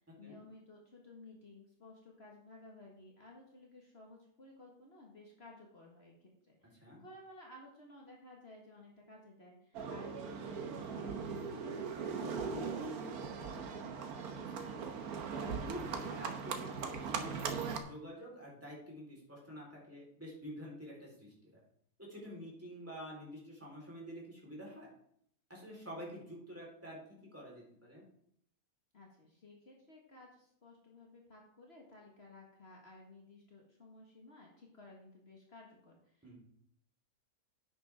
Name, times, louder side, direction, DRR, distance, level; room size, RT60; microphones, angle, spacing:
voice 1, 0.2-11.2 11.5-13.9 28.9-36.4, left 2 dB, 45° left, -1 dB, 2.0 m, -56 dB
Livestock farm animals working animals, 9.7-17.8, right 5 dB, 90° right, 1.5 m, -39 dB
voice 2, 14.3-15.0 15.3-21.5 22.0-24.9 25.5-28.1 36.2-36.4, equal, 10° right, -4 dB, 4.1 m, -48 dB
10.5 x 9.5 x 3.6 m, 0.68 s
omnidirectional pair, 1.5 m